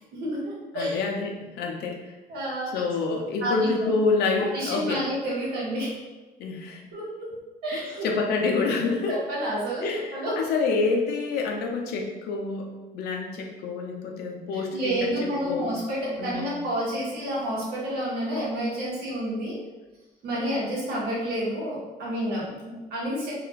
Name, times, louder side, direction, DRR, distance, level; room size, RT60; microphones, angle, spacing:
voice 1, 0.0-1.0 2.3-2.8 3.4-3.7 4.4-5.9 6.9-7.3 7.6-8.1 9.0-10.4 14.5-19.6 20.2-23.3, equal, 70° right, -6 dB, 1.1 m, -29 dB
voice 2, 0.7-2.0 2.7-5.0 6.4-6.8 7.7-9.1 9.8-12.7 12.9-14.9 15.5-15.7 16.2-16.5, left 4 dB, 70° left, 1 dB, 0.5 m, -27 dB
2.9 x 2.3 x 2.2 m, 1.1 s
cardioid pair, 110°, 17 cm